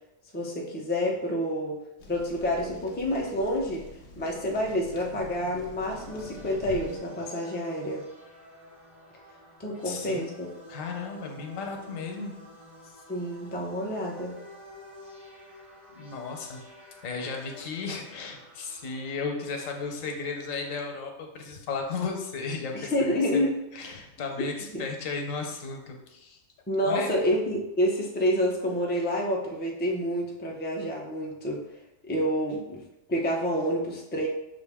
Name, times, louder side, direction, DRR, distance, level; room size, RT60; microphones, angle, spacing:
voice 1, 0.3-1.8 2.1-3.9 4.2-8.0 9.6-10.5 13.1-14.3 22.7-23.5 24.4-24.5 24.7-24.9 26.7-31.6 32.0-32.8 33.1-34.3, equal, 15° left, -2 dB, 0.4 m, -28 dB
sound 1, 2.0-7.0, left 2 dB, 65° left, 1.0 m, -46 dB
sound 2, 5.8-20.9, left 1 dB, ahead, 1.1 m, -50 dB
voice 2, 9.8-10.2 10.7-12.3 15.9-16.6 17.0-23.5 23.7-26.4 26.9-27.1, left 4 dB, 90° left, 3 dB, 1.1 m, -34 dB
5.8 x 2.5 x 3.5 m, 0.93 s
omnidirectional pair, 1.3 m